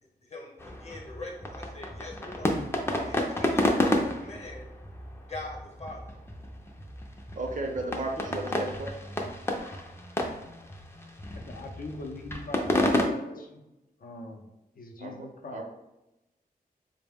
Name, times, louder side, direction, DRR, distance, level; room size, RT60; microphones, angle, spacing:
voice 1, 0.2-2.6 3.0-4.7 5.3-6.0, left 2 dB, 45° left, 0 dB, 0.9 m, -42 dB
sound 1, 0.6-13.1, left 1 dB, 15° left, 0.4 m, -31 dB
voice 2, 7.3-9.0 15.0-15.6, right 2 dB, 55° right, 3 dB, 0.6 m, -34 dB
voice 3, 11.3-13.6 14.0-14.5 14.7-15.6, left 2 dB, 65° left, 3 dB, 0.5 m, -42 dB
4.3 x 2.1 x 3.4 m, 0.93 s
wide cardioid pair, 115°, 16 cm